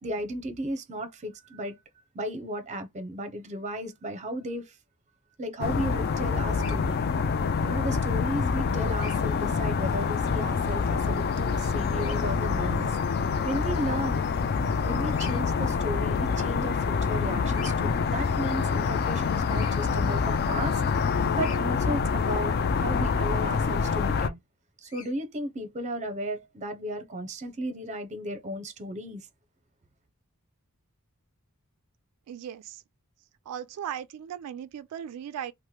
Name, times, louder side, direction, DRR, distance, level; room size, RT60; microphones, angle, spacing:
voice 1, 0.0-1.8 2.1-4.8 5.4-7.0 7.6-13.0 13.4-14.3 14.8-20.8 21.3-24.4 24.8-29.3, right 1 dB, 30° right, 0.6 m, -34 dB
sound 1, 5.6-24.3, left 5 dB, 45° left, 0.3 m, -26 dB
Bird vocalization bird call bird song, 6.5-6.8 8.9-9.2 11.9-12.2 15.1-15.4 17.5-17.8 19.5-19.8 21.3-21.6 24.8-25.1, left 5 dB, 65° left, 0.9 m, -43 dB
voice 2, 32.3-32.8 33.5-35.5, right 9 dB, 90° right, 0.3 m, -37 dB
2.9 x 2.1 x 3.2 m
head